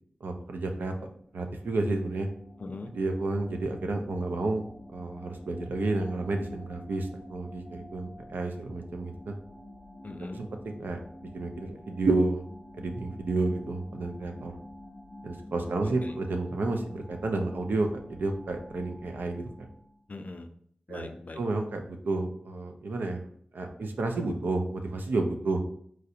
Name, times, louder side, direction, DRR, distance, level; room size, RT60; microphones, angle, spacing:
voice 1, 0.2-0.9 1.3-2.3 2.9-4.6 4.9-9.3 10.4-12.4 12.8-14.6 15.2-19.5 20.9-21.1 21.4-23.2 23.5-25.6, right 2 dB, 80° right, 4 dB, 0.4 m, -31 dB
sound 1, 1.1-20.0, left 1 dB, 15° right, 1.4 m, -49 dB
voice 2, 2.6-2.9 10.0-10.5 15.8-16.2 20.1-20.5 20.9-21.4, left 2 dB, 55° left, 6 dB, 0.4 m, -41 dB
3.1 x 2.5 x 2.7 m, 0.63 s
cardioid pair, 45°, 3 cm